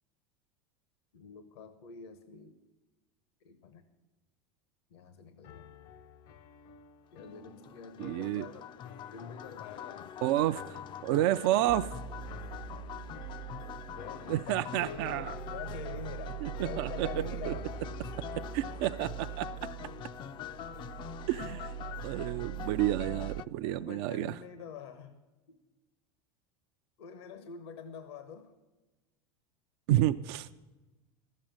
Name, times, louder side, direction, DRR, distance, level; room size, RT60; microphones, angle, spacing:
voice 1, 1.1-2.6 3.4-3.8 4.9-5.7 7.1-8.7 9.1-10.1 13.9-17.7 18.0-18.1 23.5-25.2 25.5-25.6 27.0-28.5, left 6 dB, 80° left, 10 dB, 0.9 m, -46 dB
sound 1, 5.4-19.2, left 6 dB, 60° left, 0.7 m, -52 dB
sound 2, 7.2-23.4, left 10 dB, 35° left, 0.3 m, -44 dB
voice 2, 8.0-8.5 10.2-11.9 14.3-15.3 16.4-17.1 17.5-17.6 18.3-19.5 21.3-21.7 22.0-24.3 29.9-30.5, right 14 dB, 65° right, 10 dB, 0.4 m, -30 dB
sound 3, 11.7-23.4, right 10 dB, 80° right, 0.8 m, -42 dB
12.5 x 7.5 x 8.9 m, 1.2 s
supercardioid pair, 105°, 14 cm